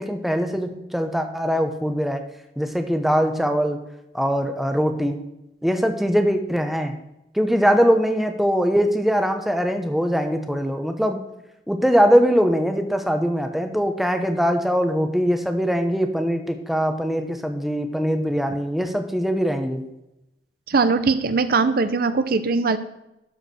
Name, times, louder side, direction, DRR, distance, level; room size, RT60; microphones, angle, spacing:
voice 1, 0.0-2.2 2.6-3.8 4.1-5.2 5.6-6.9 7.3-11.2 11.7-19.8, equal, ahead, 6 dB, 0.9 m, -22 dB
voice 2, 20.7-22.8, right 4 dB, 55° right, 11 dB, 0.6 m, -20 dB
12.0 x 4.9 x 6.2 m, 0.89 s
head